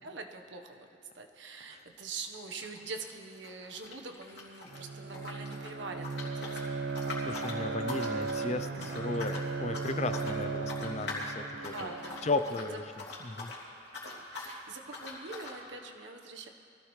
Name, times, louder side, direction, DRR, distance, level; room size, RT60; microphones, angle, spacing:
voice 1, 0.0-0.9 1.1-6.6 7.1-7.3 7.9-8.0 11.7-12.3 14.0-16.5, right 3 dB, 80° right, 4 dB, 1.2 m, -44 dB
sound 1, 1.8-2.0 2.2-4.8 5.1-13.6 13.9-14.6 14.9-15.6, left 2 dB, 60° left, 3.0 m, -43 dB
Bowed string instrument, 4.7-12.5, right 4 dB, 60° right, 0.6 m, -36 dB
voice 2, 7.3-11.9 12.2-13.5, left 3 dB, 35° left, 9 dB, 0.6 m, -35 dB
23.0 x 16.0 x 3.2 m, 2.5 s
head